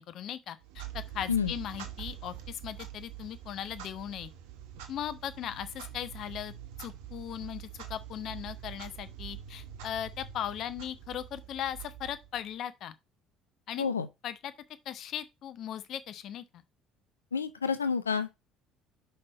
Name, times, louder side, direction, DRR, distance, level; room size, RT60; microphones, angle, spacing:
voice 1, 0.0-4.3 4.9-6.5 6.8-12.9 13.7-13.9 14.2-14.5 14.8-16.6, left 10 dB, 55° left, 0.9 m, -38 dB
Clock, 0.6-12.6, right 10 dB, 70° right, 1.1 m, -45 dB
voice 2, 17.3-18.3, left 6 dB, 90° left, 0.5 m, -29 dB
5.7 x 5.5 x 4.0 m
hypercardioid pair, 60°, 0 cm